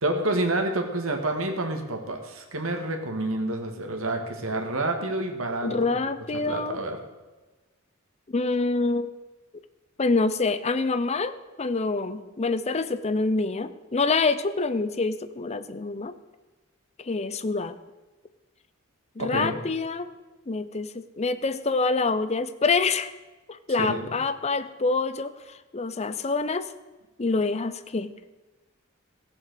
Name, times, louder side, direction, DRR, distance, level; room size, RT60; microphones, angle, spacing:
voice 1, 0.0-6.0 6.3-7.0 19.2-19.6 23.8-24.1, right 2 dB, 80° right, 4 dB, 1.8 m, -28 dB
voice 2, 5.6-6.8 8.3-9.1 10.0-16.1 17.0-17.8 19.2-20.1 20.5-23.1 23.5-26.7 27.2-28.1, left 3 dB, 30° left, 12 dB, 0.6 m, -26 dB
15.0 x 7.1 x 6.7 m, 1.2 s
head